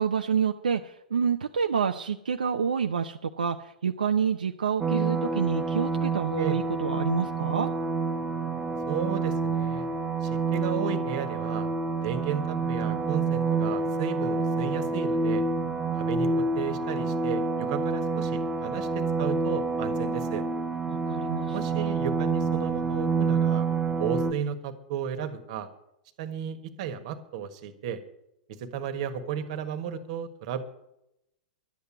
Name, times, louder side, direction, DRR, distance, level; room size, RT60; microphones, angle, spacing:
voice 1, 0.0-7.7 20.9-21.9, right 6 dB, 75° right, 5 dB, 0.6 m, -28 dB
sound 1, 4.8-24.3, right 4 dB, 20° right, 1.0 m, -28 dB
voice 2, 8.9-9.9 10.2-11.7 12.0-15.4 15.9-20.4 21.5-23.7 24.0-25.7 26.2-28.0 28.5-30.6, right 8 dB, 50° right, 9 dB, 1.5 m, -34 dB
11.5 x 8.3 x 8.9 m, 0.83 s
figure-of-eight pair, 100°, 5 cm